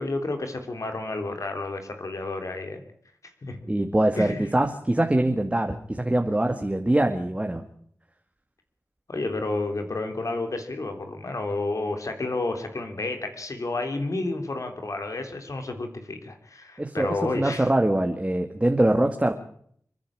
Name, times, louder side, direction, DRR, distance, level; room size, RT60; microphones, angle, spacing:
voice 1, 0.0-2.8 3.4-3.6 4.2-4.5 9.1-17.7, left 2 dB, 65° left, 6 dB, 3.4 m, -30 dB
voice 2, 3.7-7.6 16.8-19.3, right 1 dB, 20° right, 4 dB, 2.2 m, -23 dB
29.5 x 10.5 x 8.8 m, 0.64 s
wide cardioid pair, 50°, 6 cm